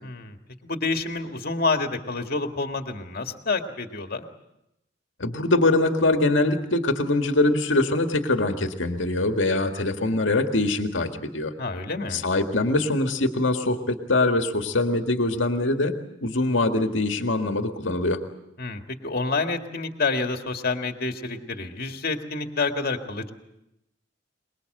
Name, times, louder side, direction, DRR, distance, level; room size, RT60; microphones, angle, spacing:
voice 1, 0.0-0.4 0.6-4.2 11.6-12.2 18.6-23.3, left 3 dB, 55° left, 5 dB, 2.0 m, -28 dB
voice 2, 5.2-11.5 12.1-16.0 16.2-18.2, left 2 dB, 85° left, 5 dB, 1.9 m, -23 dB
24.5 x 21.5 x 7.8 m, 0.85 s
head